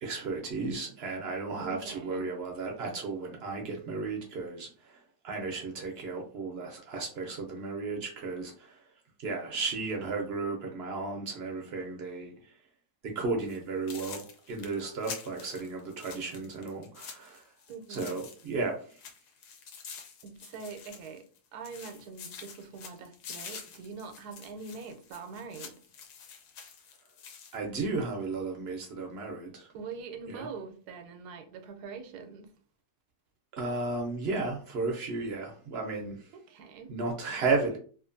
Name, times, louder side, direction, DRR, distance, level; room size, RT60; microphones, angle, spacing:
voice 1, 0.0-4.7 5.2-8.7 9.2-12.3 13.0-17.4 17.9-18.8 27.5-29.7 30.3-30.5 33.5-36.2 36.9-37.8, right 3 dB, 60° right, 0.6 m, -34 dB
voice 2, 1.6-2.4 6.2-6.6 17.7-18.2 20.2-21.3 21.5-25.8 29.7-32.6 36.3-36.9, right 5 dB, 80° right, 1.1 m, -44 dB
sound 1, 13.4-13.6 13.9-18.6 18.9-21.4 21.6-27.6, left 6 dB, 85° left, 1.2 m, -47 dB
2.8 x 2.5 x 2.5 m
omnidirectional pair, 1.7 m